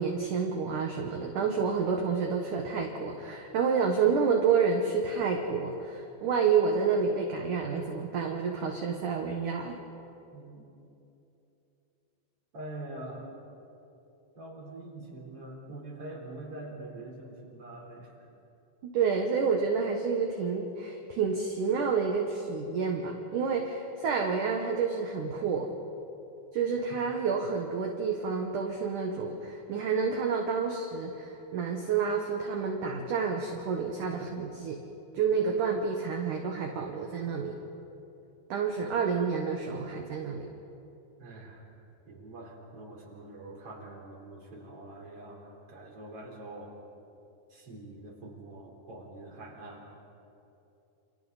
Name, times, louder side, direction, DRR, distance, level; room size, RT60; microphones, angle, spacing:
voice 1, 0.0-9.8 18.8-25.7 26.5-34.8 35.1-37.6 38.5-40.5, right 5 dB, 65° right, 2 dB, 2.1 m, -29 dB
voice 2, 10.3-10.6 12.5-13.3 14.4-18.1 26.9-27.0 41.2-41.6 42.1-46.7 47.5-49.9, right 2 dB, 30° right, -2 dB, 4.5 m, -44 dB
29.0 x 28.5 x 4.1 m, 2.8 s
omnidirectional pair, 5.4 m